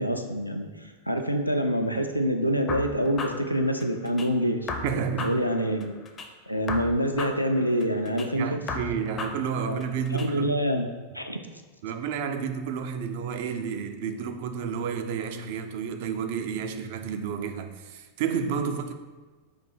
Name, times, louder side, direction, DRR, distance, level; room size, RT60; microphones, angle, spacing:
voice 1, 0.0-4.7 5.2-5.9 6.5-8.6 9.6-9.8 10.1-10.9 11.1-11.4, equal, 90° left, 0.4 m, -26 dB
sound 1, 2.7-4.3 4.7-6.3 6.7-8.3 8.7-10.3, left 4 dB, 25° left, 0.5 m, -36 dB
voice 2, 4.8-5.4 8.1-10.6 11.8-18.9, right 6 dB, 50° right, 0.3 m, -31 dB
4.3 x 2.6 x 4.4 m
figure-of-eight pair, 90°, 0 cm